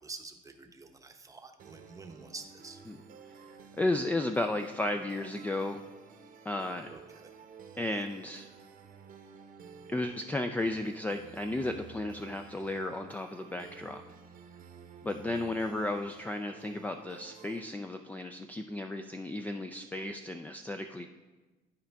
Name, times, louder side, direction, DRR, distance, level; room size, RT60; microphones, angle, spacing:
voice 1, 0.0-2.8 6.9-7.3 7.9-8.0, right 3 dB, 20° right, 5 dB, 0.8 m, -47 dB
sound 1, 1.6-17.6, right 6 dB, 55° right, 0.8 m, -52 dB
voice 2, 3.5-5.8 6.5-6.9 7.8-8.5 9.9-14.0 15.0-21.1, left 2 dB, 10° left, 6 dB, 0.3 m, -34 dB
11.5 x 4.9 x 3.5 m, 1.2 s
cardioid pair, 110°, 17 cm